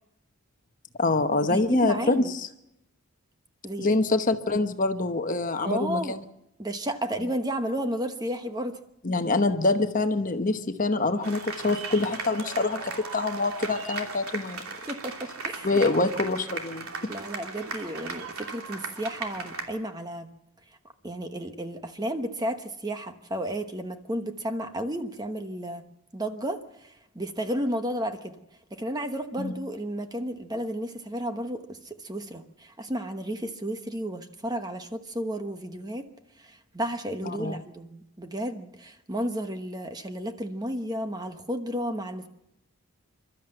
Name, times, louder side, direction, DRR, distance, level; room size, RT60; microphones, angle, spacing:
voice 1, 1.0-2.5 3.8-6.2 9.0-12.8 13.1-14.6 15.6-16.9 29.4-29.5 37.2-37.6, left 2 dB, 35° left, 8 dB, 1.0 m, -25 dB
voice 2, 1.5-2.3 3.6-4.0 5.6-6.2 6.6-8.8 14.9-15.8 17.1-20.3 21.0-25.8 26.1-28.4 28.7-36.1 36.4-42.3, equal, 15° right, 7 dB, 1.1 m, -32 dB
sound 1, 11.2-19.6, right 4 dB, 75° right, 2.9 m, -37 dB
28.0 x 12.5 x 7.8 m, 0.88 s
head